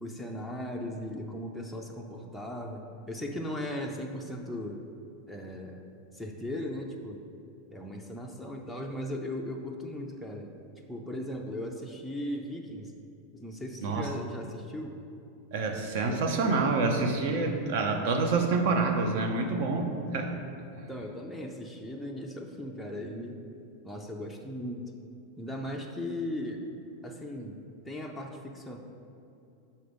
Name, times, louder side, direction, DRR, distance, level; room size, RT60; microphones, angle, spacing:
voice 1, 0.0-4.8 5.3-5.8 6.1-7.3 7.7-10.5 10.9-12.9 13.3-15.0 20.8-23.4 23.8-24.9 25.4-26.7 27.0-27.6 27.9-28.8, left 1 dB, ahead, 1 dB, 0.4 m, -37 dB
voice 2, 15.5-20.4, right 3 dB, 55° right, 4 dB, 0.8 m, -27 dB
6.4 x 4.2 x 5.2 m, 2.6 s
supercardioid pair, 160°, 0 cm